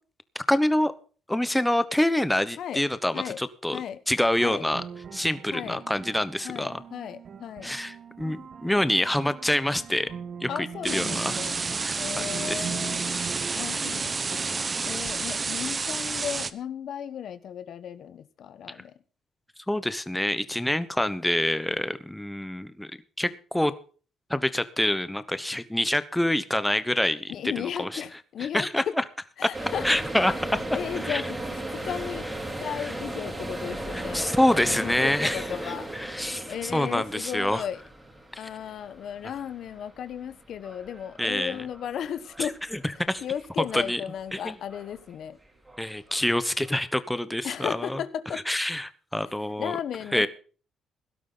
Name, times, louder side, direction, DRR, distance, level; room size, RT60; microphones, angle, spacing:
voice 1, 0.3-0.9 1.3-3.8 4.1-4.8 5.1-6.8 7.6-10.1 10.4-11.4 11.8-12.7 13.4-13.9 19.7-22.9 23.2-23.7 24.3-28.0 28.5-29.0 29.8-30.3 31.0-31.2 32.7-32.9 33.9-37.6 41.2-41.7 42.4-42.8 43.1-43.2 43.7-44.0 44.3-44.5 45.8-48.0 48.3-49.8 50.1-50.3, left 1 dB, 5° left, 13 dB, 1.1 m, -26 dB
sound 1, 4.3-13.5, right 7 dB, 55° right, 1.3 m, -41 dB
voice 2, 5.5-5.8 6.4-7.7 10.5-11.5 12.0-13.1 13.5-14.5 14.9-18.9 27.3-28.9 29.4-29.8 30.7-32.3 32.6-34.3 34.6-35.9 36.5-37.8 38.4-42.6 43.2-45.4 47.4-48.4 49.6-50.3, left 9 dB, 70° left, 13 dB, 1.1 m, -35 dB
sound 2, 10.8-16.5, right 4 dB, 30° right, 0.9 m, -30 dB
sound 3, 29.5-44.3 44.6-45.1 45.5-46.8, right 1 dB, 15° right, 3.9 m, -37 dB
17.0 x 12.0 x 3.9 m, 0.39 s
cardioid pair, 90°, 0 cm